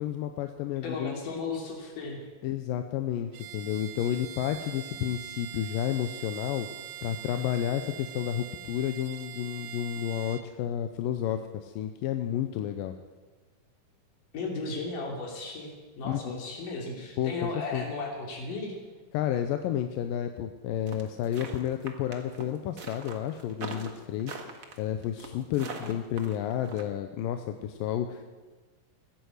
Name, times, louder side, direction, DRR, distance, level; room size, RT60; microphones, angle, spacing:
voice 1, 0.0-1.1 2.4-6.7 7.0-13.0 16.0-16.4 17.2-17.9 19.1-24.4 24.8-28.2, left 10 dB, 85° left, 7 dB, 2.4 m, -31 dB
voice 2, 0.8-2.2 14.3-18.7, left 3 dB, 65° left, 1 dB, 4.4 m, -35 dB
Bowed string instrument, 3.3-10.5, right 14 dB, 80° right, 1.8 m, -43 dB
sound 1, 20.9-26.8, right 4 dB, 60° right, 0.9 m, -41 dB
16.0 x 10.5 x 8.0 m, 1.3 s
omnidirectional pair, 4.0 m